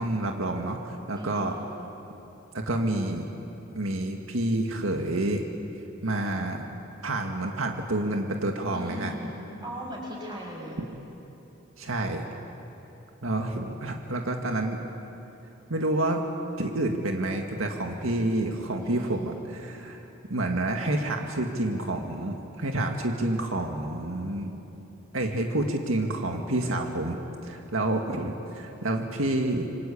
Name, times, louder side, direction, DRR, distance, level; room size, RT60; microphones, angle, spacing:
voice 1, 0.0-1.6 2.5-3.3 3.7-5.4 6.0-9.1 11.8-12.3 13.2-14.8 15.7-16.2 16.6-24.5 25.1-29.7, right 1 dB, 85° right, 3 dB, 2.0 m, -29 dB
voice 2, 1.1-1.5 8.7-10.8 18.8-19.3, equal, 20° right, -2 dB, 6.9 m, -38 dB
27.0 x 25.5 x 8.6 m, 3.0 s
head